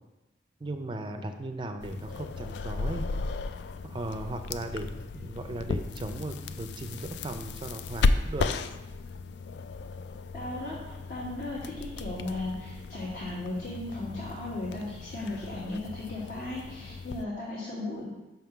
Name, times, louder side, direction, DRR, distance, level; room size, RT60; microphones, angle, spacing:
voice 1, 0.6-3.1 3.8-4.9 5.1-8.5, right 1 dB, 25° right, 6 dB, 0.4 m, -37 dB
sound 1, 1.8-17.2, left 3 dB, 70° left, 0.3 m, -34 dB
voice 2, 10.3-18.1, left 2 dB, 50° left, -8 dB, 1.2 m, -36 dB
5.7 x 3.7 x 5.7 m, 1.0 s
head